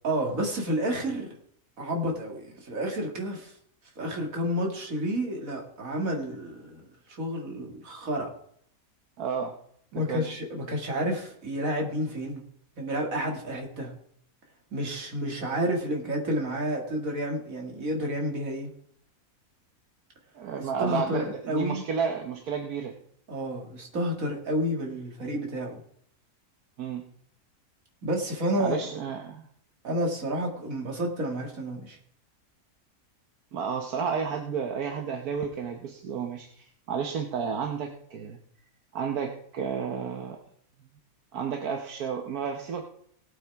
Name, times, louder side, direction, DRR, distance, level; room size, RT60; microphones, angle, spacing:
voice 1, 0.0-1.3 1.8-3.5 4.0-8.3 9.9-12.4 12.8-13.9 14.7-18.7 20.8-21.8 23.3-25.8 28.0-28.8 29.8-32.0, equal, 65° right, 1 dB, 2.6 m, -30 dB
voice 2, 9.2-9.5 9.9-10.3 20.3-22.9 26.8-27.0 28.6-29.5 33.5-38.4 38.9-40.4 41.3-42.8, right 6 dB, 85° right, 3 dB, 1.6 m, -31 dB
19.0 x 8.6 x 3.5 m, 0.65 s
omnidirectional pair, 1.6 m